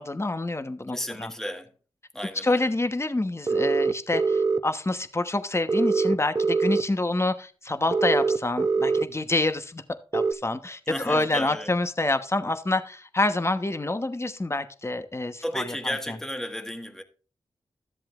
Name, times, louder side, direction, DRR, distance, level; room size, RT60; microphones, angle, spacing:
voice 1, 0.0-1.3 2.4-9.8 10.1-16.2, left 2 dB, 25° left, 1.1 m, -27 dB
voice 2, 0.9-1.7 2.1-2.7 10.9-11.7 15.4-17.0, equal, 5° left, 1.6 m, -33 dB
sound 1, 3.5-4.6 5.7-6.8 7.9-9.0 10.1-10.3, right 4 dB, 30° right, 0.9 m, -23 dB
13.0 x 7.5 x 2.5 m
cardioid pair, 45°, 10 cm